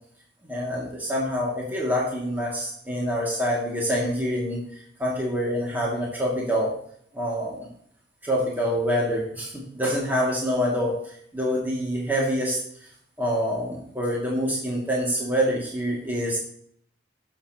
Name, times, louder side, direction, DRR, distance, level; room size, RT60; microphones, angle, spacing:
voice 1, 0.4-6.7 7.1-7.7 8.2-11.0 11.3-12.6 13.2-16.4, equal, 10° right, -4 dB, 2.4 m, -26 dB
16.5 x 7.1 x 3.0 m, 0.63 s
head